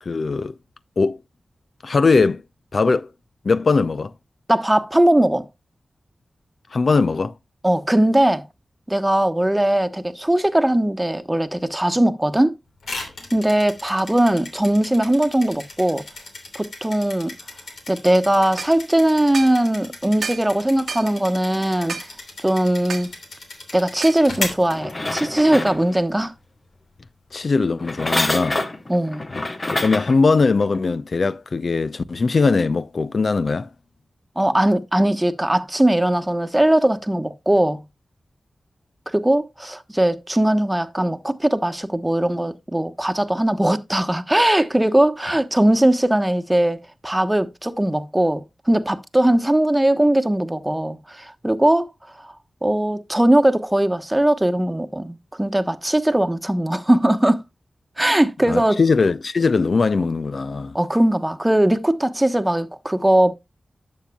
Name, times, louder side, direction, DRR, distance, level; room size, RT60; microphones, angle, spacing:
voice 1, 0.0-0.5 1.0-1.2 1.8-2.4 2.7-3.1 3.4-4.1 6.7-7.3 27.3-28.6 29.3-29.4 29.8-33.7 58.5-60.7, left 4 dB, 65° left, 0.5 m, -20 dB
voice 2, 4.5-5.5 7.6-8.5 8.9-12.5 13.3-16.0 16.5-17.3 17.9-22.0 22.4-23.1 23.7-26.3 28.9-29.3 34.4-37.8 39.1-51.9 52.2-52.3 52.6-57.4 58.0-58.8 60.7-63.3, right 1 dB, 15° right, 1.1 m, -19 dB
sound 1, 12.8-25.5, left 2 dB, 85° left, 2.8 m, -36 dB
sound 2, 18.6-18.7 19.3-19.6 20.2-20.5 20.9-21.1 21.9-22.1 22.9-23.1 24.0-24.2, right 5 dB, 80° right, 0.9 m, -30 dB
sound 3, 24.7-26.2 27.8-30.2 30.7-30.8, left 2 dB, 40° left, 1.3 m, -26 dB
11.5 x 7.5 x 2.3 m
cardioid pair, 45°, 0 cm